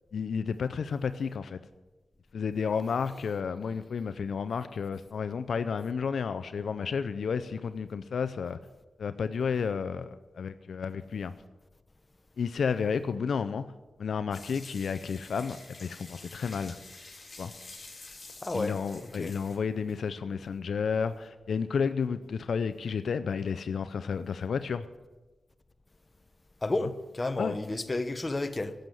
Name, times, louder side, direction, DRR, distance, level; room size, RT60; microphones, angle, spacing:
voice 1, 0.1-1.6 2.3-8.6 9.0-11.3 12.4-13.6 14.0-16.8 17.4-17.5 18.5-24.9 26.8-26.9 27.4-27.6, left 6 dB, 80° left, 0.5 m, -31 dB
sound 1, 14.3-19.6, left 3 dB, 45° left, 3.5 m, -48 dB
voice 2, 18.4-18.8 19.1-19.3 26.6-28.7, left 2 dB, 30° left, 0.9 m, -31 dB
11.5 x 7.9 x 9.0 m
cardioid pair, 70°, 0 cm